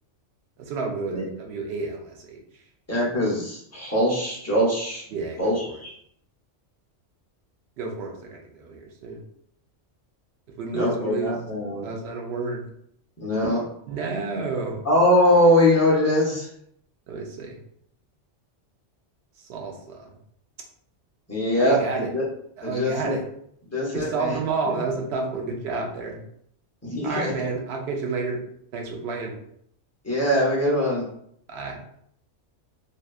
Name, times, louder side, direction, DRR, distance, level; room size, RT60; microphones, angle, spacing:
voice 1, 0.6-2.6 5.1-5.8 7.8-9.2 10.6-11.4 11.8-12.7 13.9-14.8 17.1-17.6 19.4-20.0 21.6-22.1 22.6-23.2 23.9-26.2 27.0-28.4 28.7-29.3 31.5-31.8, right 4 dB, 65° right, 1 dB, 0.8 m, -30 dB
voice 2, 2.9-5.0 5.4-5.9 10.7-11.9 13.2-13.6 14.8-16.5 21.3-22.2 22.6-23.2 23.7-24.3 26.8-27.3 30.0-31.0, left 1 dB, 20° left, -5 dB, 0.4 m, -22 dB
2.7 x 2.2 x 2.3 m, 0.69 s
omnidirectional pair, 1.2 m